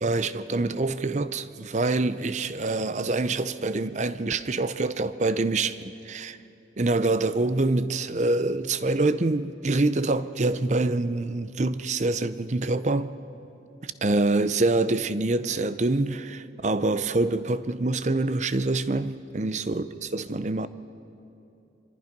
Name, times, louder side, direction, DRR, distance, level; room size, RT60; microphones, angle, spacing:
voice 1, 0.0-6.4 6.8-13.2 13.8-20.7, right 2 dB, 40° right, 0.6 m, -26 dB
25.0 x 25.0 x 5.3 m
head